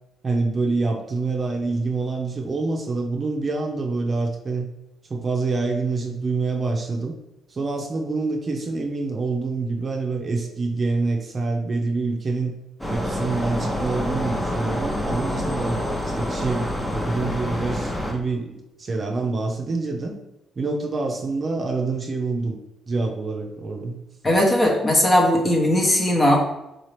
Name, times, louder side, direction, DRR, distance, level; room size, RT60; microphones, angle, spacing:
voice 1, 0.2-4.7 5.1-7.2 7.5-12.5 12.9-20.2 20.6-22.6 22.9-24.0, right 3 dB, 40° right, 1 dB, 0.6 m, -26 dB
sound 1, 12.8-18.1, left 1 dB, 10° left, 0.7 m, -27 dB
voice 2, 24.2-26.4, left 1 dB, 30° left, 0 dB, 1.0 m, -18 dB
4.0 x 2.8 x 3.2 m, 0.91 s
cardioid pair, 90°, 0 cm